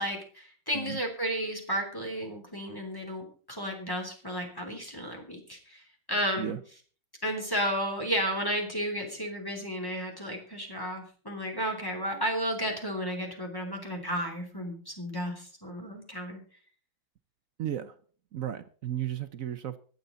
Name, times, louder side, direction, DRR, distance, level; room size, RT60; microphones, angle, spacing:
voice 1, 0.0-5.8 6.1-6.6 7.2-16.4, equal, 10° left, 2 dB, 3.4 m, -33 dB
voice 2, 17.6-17.9 18.3-19.8, right 10 dB, 65° right, 12 dB, 0.8 m, -34 dB
24.5 x 8.2 x 3.9 m, 0.42 s
omnidirectional pair, 2.2 m